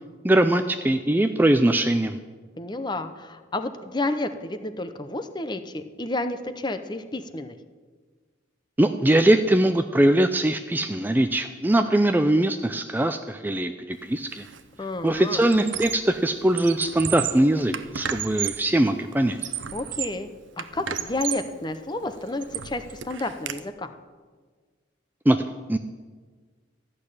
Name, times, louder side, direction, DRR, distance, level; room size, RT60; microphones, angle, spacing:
voice 1, 0.2-2.2 8.8-14.4 15.0-19.4 25.3-25.8, right 1 dB, 10° right, 8 dB, 0.4 m, -21 dB
voice 2, 2.6-7.6 14.8-15.4 19.7-20.3 20.6-23.9, left 2 dB, 20° left, 10 dB, 0.7 m, -31 dB
Squeak, 14.3-14.6 14.9-16.1 16.5-18.7 19.2-20.2 20.6-21.5 22.0-23.6, right 10 dB, 65° right, 0.7 m, -33 dB
14.0 x 6.6 x 9.9 m, 1.5 s
head